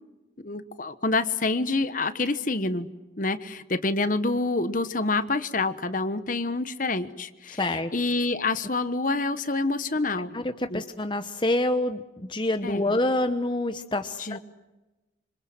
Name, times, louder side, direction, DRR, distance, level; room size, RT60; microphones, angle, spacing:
voice 1, 0.4-2.9 3.2-10.4 10.7-10.8 12.6-12.9 14.2-14.4, left 3 dB, 45° left, 12 dB, 1.2 m, -27 dB
voice 2, 7.6-7.9 10.3-12.0 12.3-14.4, left 1 dB, 25° left, 8 dB, 1.0 m, -26 dB
27.0 x 26.0 x 7.7 m, 1.1 s
head